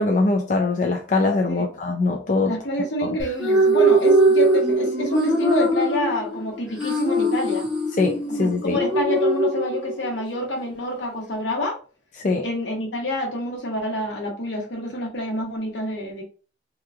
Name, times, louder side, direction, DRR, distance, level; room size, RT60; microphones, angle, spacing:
voice 1, 0.0-2.5 3.0-3.1 8.0-8.8 12.2-12.5, left 3 dB, 40° left, 0.4 m, -22 dB
voice 2, 2.5-7.7 8.4-11.8 12.4-16.2, left 1 dB, 80° left, 1.1 m, -27 dB
sound 1, 3.2-10.2, right 1 dB, 5° right, 0.7 m, -21 dB
3.0 x 2.3 x 3.5 m
head